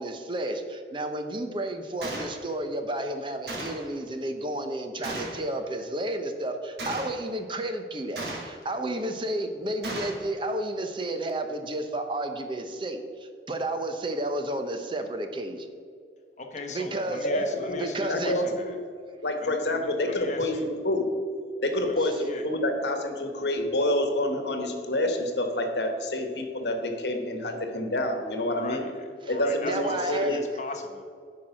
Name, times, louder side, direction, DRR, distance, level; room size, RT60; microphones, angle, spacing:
voice 1, 0.0-15.7 16.7-17.3 17.8-18.4 29.3-29.4 29.6-30.4, right 1 dB, 30° right, 6 dB, 0.7 m, -31 dB
Gunshot gunfire, 2.0-2.3 3.5-3.9 5.0-5.4 6.8-7.2 8.2-8.6 9.8-10.2, right 2 dB, 75° right, 2.0 m, -35 dB
voice 2, 16.4-18.8 19.4-20.6 21.7-22.5 28.4-31.1, left 2 dB, 40° left, 3 dB, 1.1 m, -38 dB
voice 3, 17.2-18.8 19.2-21.1 21.6-28.8 29.3-30.4, left 1 dB, 80° left, 5 dB, 1.3 m, -28 dB
10.5 x 4.7 x 5.9 m, 2.1 s
head